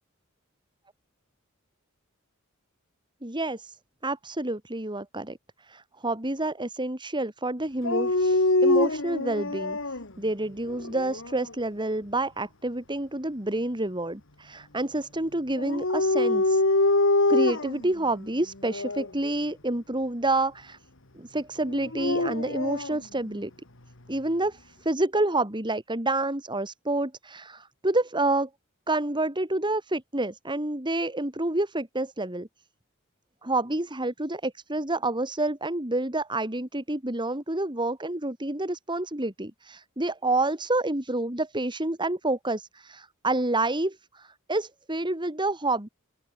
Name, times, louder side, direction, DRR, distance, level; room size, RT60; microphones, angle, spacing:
voice 1, 3.2-3.8 4.0-9.8 10.2-17.0 17.3-20.8 21.2-23.5 24.1-28.5 28.9-32.5 33.4-45.9, right 2 dB, 25° right, 3.5 m, -28 dB
Dog, 7.8-10.1 10.7-11.4 15.6-17.9 18.7-19.1 21.7-23.0, left 2 dB, 65° left, 2.7 m, -24 dB
open air
head